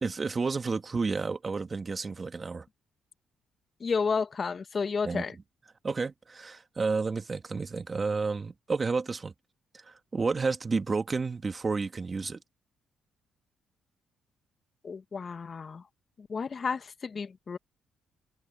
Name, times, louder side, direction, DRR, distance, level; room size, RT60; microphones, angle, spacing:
voice 1, 0.0-2.7 5.0-5.3 5.8-9.3 9.8-12.4, right 4 dB, 30° right, 1.8 m, -31 dB
voice 2, 3.8-5.3 14.8-15.8 16.2-17.6, left 5 dB, 40° left, 0.7 m, -31 dB
cardioid pair, 90°, 0 cm